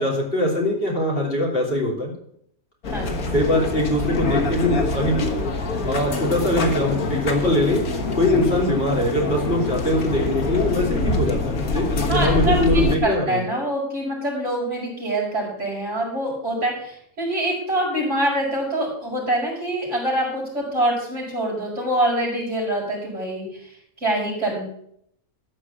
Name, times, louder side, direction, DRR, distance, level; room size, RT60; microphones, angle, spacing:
voice 1, 0.0-2.1 3.3-5.3 5.8-7.8 8.1-13.4, left 1 dB, 40° left, -3 dB, 3.2 m, -22 dB
sound 1, 2.8-13.0, left 2 dB, 80° left, 1.8 m, -25 dB
voice 2, 2.9-3.4 12.1-24.6, right 1 dB, 55° right, -5 dB, 5.4 m, -25 dB
13.5 x 4.9 x 8.5 m, 0.70 s
omnidirectional pair, 1.5 m